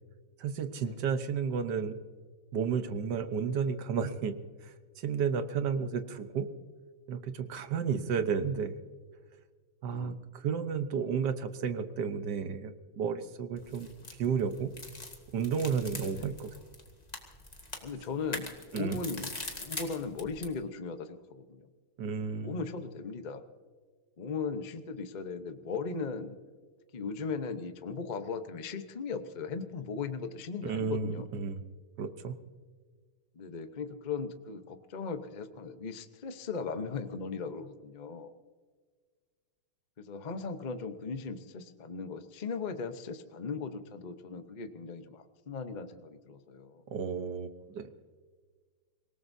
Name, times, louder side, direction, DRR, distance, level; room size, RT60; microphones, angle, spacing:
voice 1, 0.4-2.0 2.5-4.3 4.6-6.5 7.1-8.7 9.8-14.7 15.3-16.5 18.7-19.0 22.0-22.6 30.6-31.6 32.0-32.3 46.9-47.9, right 6 dB, 60° right, 10 dB, 1.4 m, -32 dB
sound 1, 13.6-20.6, left 2 dB, 20° left, 1.8 m, -43 dB
voice 2, 16.0-16.3 17.8-21.7 22.4-23.4 24.2-26.4 26.9-31.3 33.3-38.3 40.0-46.8, left 4 dB, 50° left, 8 dB, 0.5 m, -38 dB
26.0 x 18.0 x 2.7 m, 1.5 s
omnidirectional pair, 2.3 m